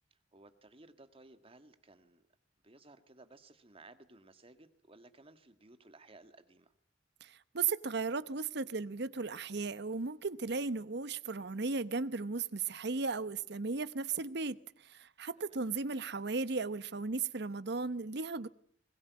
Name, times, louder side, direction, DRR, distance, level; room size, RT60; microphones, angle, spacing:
voice 1, 0.1-2.2 2.6-6.7 15.4-15.6, right 2 dB, 30° right, 1.8 m, -58 dB
voice 2, 7.2-14.6 14.8-18.5, right 4 dB, 65° right, 0.9 m, -36 dB
21.5 x 19.5 x 9.5 m
head